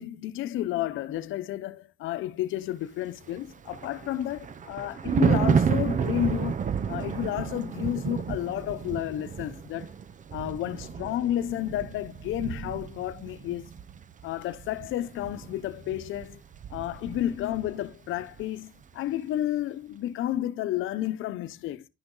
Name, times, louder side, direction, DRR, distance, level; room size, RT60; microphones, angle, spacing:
voice 1, 0.0-9.9 10.3-13.7 14.2-16.4 16.7-21.9, left 13 dB, 85° left, 0.8 m, -31 dB
Thunder, 3.3-17.9 18.1-18.4, right 6 dB, 40° right, 0.6 m, -31 dB
11.0 x 6.0 x 3.9 m
cardioid pair, 90°, 20 cm